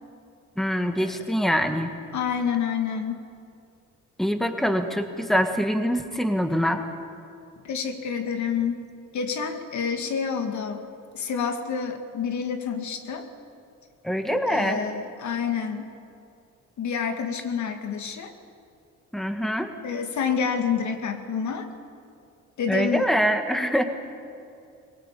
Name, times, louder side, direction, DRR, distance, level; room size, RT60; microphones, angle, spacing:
voice 1, 0.6-1.9 4.2-6.8 14.0-14.8 19.1-19.7 22.7-23.8, equal, ahead, 6 dB, 1.8 m, -24 dB
voice 2, 2.1-3.2 7.6-8.8 9.1-10.8 11.1-13.3 14.5-15.9 16.8-18.3 19.8-21.7 22.6-23.1, left 6 dB, 70° left, 6 dB, 2.2 m, -28 dB
22.5 x 18.0 x 8.4 m, 2.5 s
cardioid pair, 90°, 30 cm